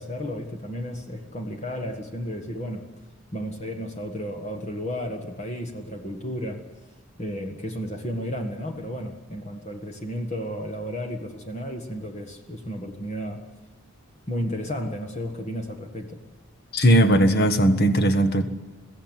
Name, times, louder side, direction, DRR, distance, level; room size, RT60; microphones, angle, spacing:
voice 1, 0.0-2.9 3.3-6.7 7.2-13.4 14.3-16.2, equal, 30° left, 4 dB, 1.6 m, -33 dB
voice 2, 16.7-18.4, right 1 dB, 45° left, 8 dB, 1.7 m, -18 dB
22.5 x 15.5 x 9.6 m, 1.3 s
head